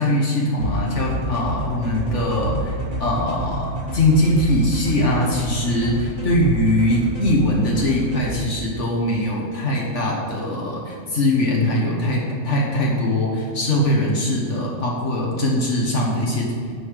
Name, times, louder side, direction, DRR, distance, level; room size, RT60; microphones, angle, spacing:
voice 1, 0.0-16.5, left 1 dB, 70° left, -3 dB, 1.8 m, -21 dB
sound 1, 0.6-8.3, right 1 dB, 50° right, 3.1 m, -28 dB
9.7 x 5.7 x 8.2 m, 2.2 s
omnidirectional pair, 1.3 m